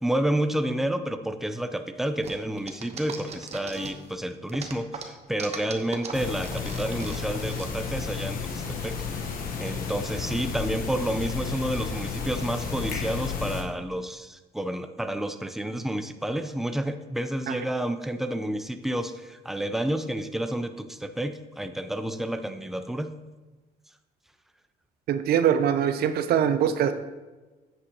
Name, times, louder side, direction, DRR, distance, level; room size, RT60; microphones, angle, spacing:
voice 1, 0.0-9.0 9.6-23.1, right 1 dB, ahead, 8 dB, 0.6 m, -30 dB
sound 1, 2.2-4.1 4.5-7.7, right 6 dB, 40° right, 1.1 m, -38 dB
sound 2, 6.1-13.6, left 5 dB, 55° left, 1.2 m, -32 dB
voice 2, 25.1-26.9, right 9 dB, 65° right, 10 dB, 0.6 m, -23 dB
9.8 x 7.8 x 2.9 m, 1.2 s
cardioid pair, 110°, 17 cm